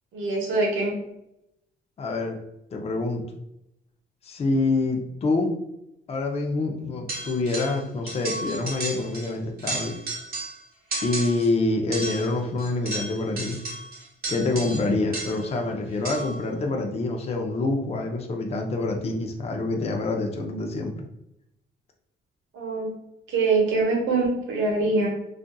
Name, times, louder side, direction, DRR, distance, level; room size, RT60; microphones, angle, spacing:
voice 1, 0.1-1.0 22.5-22.9 23.3-25.1, right 3 dB, 80° right, -1 dB, 0.8 m, -23 dB
voice 2, 2.0-2.4 2.7-3.2 4.2-5.5 6.1-9.9 11.0-13.6 14.3-21.0, left 2 dB, 30° left, 2 dB, 0.5 m, -26 dB
sound 1, 7.1-7.8 8.1-9.3 9.6-10.6 10.9-11.5 11.9-15.5 16.0-16.4, right 2 dB, 50° right, 1.0 m, -33 dB
2.6 x 2.4 x 2.2 m, 0.83 s
cardioid pair, 90°, 20 cm